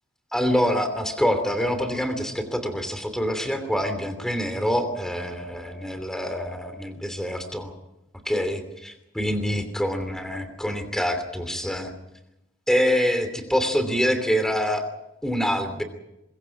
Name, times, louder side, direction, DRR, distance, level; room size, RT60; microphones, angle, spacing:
voice 1, 0.3-7.7 8.2-11.9 12.7-14.8 15.2-15.8, equal, 5° left, 8 dB, 2.9 m, -25 dB
24.0 x 22.5 x 5.9 m, 0.90 s
head